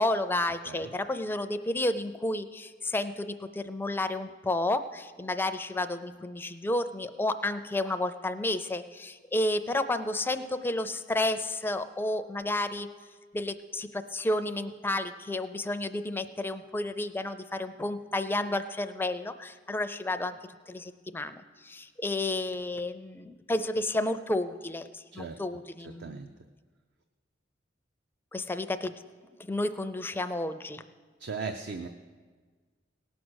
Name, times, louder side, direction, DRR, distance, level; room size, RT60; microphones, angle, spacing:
voice 1, 0.0-12.9 13.3-20.4 20.7-26.3 28.3-28.9 29.4-30.9, left 1 dB, 10° left, 10 dB, 0.4 m, -31 dB
voice 2, 31.2-31.9, right 4 dB, 60° right, 7 dB, 0.5 m, -37 dB
18.0 x 6.2 x 6.3 m, 1.5 s
head